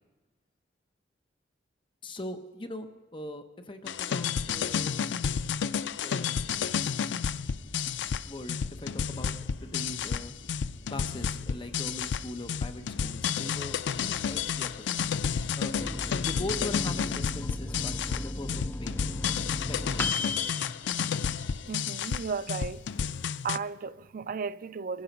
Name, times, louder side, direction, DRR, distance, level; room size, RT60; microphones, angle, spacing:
voice 1, 2.0-5.0 6.0-6.9 8.2-10.3 10.9-15.0 15.6-19.0 19.7-19.8, left 1 dB, 30° left, 0.8 m, -41 dB
sound 1, 3.9-23.6, left 7 dB, 80° left, 0.4 m, -31 dB
sound 2, 7.3-20.2, left 1 dB, 60° left, 1.2 m, -49 dB
Microwave oven, 15.8-21.8 22.2-22.3 22.6-23.2, left 2 dB, 10° left, 0.4 m, -36 dB
voice 2, 21.7-22.9 23.4-25.0, right 5 dB, 50° right, 0.4 m, -35 dB
23.0 x 10.5 x 5.3 m
head